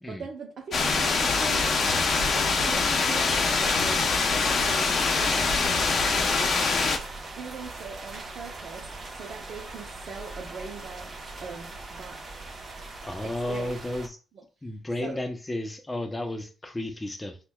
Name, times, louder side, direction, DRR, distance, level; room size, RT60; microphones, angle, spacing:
voice 1, 0.1-6.5 7.4-11.1 11.4-12.2 13.2-13.8 15.0-15.2, right 4 dB, 60° right, 0.7 m, -41 dB
sound 1, 0.7-7.0, left 4 dB, 50° left, 0.7 m, -24 dB
sound 2, 1.2-6.2, left 5 dB, 85° left, 0.3 m, -38 dB
sound 3, 4.5-14.1, right 2 dB, 35° right, 1.1 m, -40 dB
voice 2, 13.0-14.2 14.6-17.4, left 1 dB, 15° left, 0.7 m, -33 dB
5.9 x 2.3 x 2.3 m
cardioid pair, 90°, 0 cm